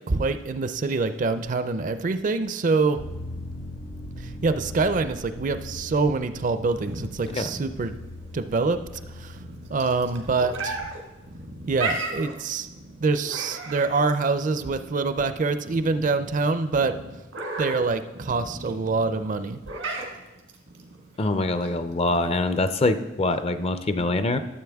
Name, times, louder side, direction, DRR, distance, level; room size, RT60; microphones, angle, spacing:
voice 1, 0.1-3.0 4.2-7.9 8.3-8.8 9.1-9.4 9.7-10.8 11.7-12.7 13.0-16.9 17.6-19.6, right 3 dB, 45° right, 11 dB, 0.4 m, -25 dB
sound 1, 3.0-14.3 14.6-14.7, left 1 dB, 75° left, 1.1 m, -41 dB
sound 2, 6.7-22.7, right 2 dB, 85° right, 1.6 m, -36 dB
voice 2, 21.2-24.4, left 2 dB, 30° left, 10 dB, 0.4 m, -24 dB
12.5 x 7.6 x 3.5 m, 1.0 s
head